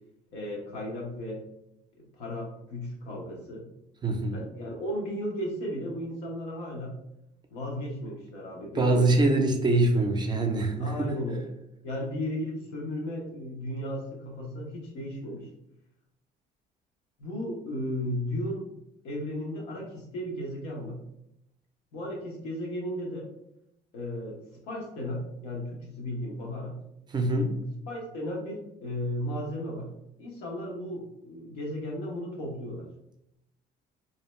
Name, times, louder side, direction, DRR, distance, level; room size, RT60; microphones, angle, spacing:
voice 1, 0.3-1.4 2.0-3.6 4.3-6.9 7.5-9.4 10.8-11.5 11.8-15.5 17.2-18.7 19.0-21.0 21.9-23.3 23.9-24.4 24.7-26.8 27.9-29.9 30.2-32.9, left 1 dB, 85° left, -1 dB, 0.9 m, -35 dB
voice 2, 4.0-4.4 8.7-11.1 27.1-27.6, right 2 dB, 25° right, 4 dB, 0.4 m, -24 dB
2.6 x 2.1 x 3.1 m, 0.81 s
cardioid pair, 110°, 17 cm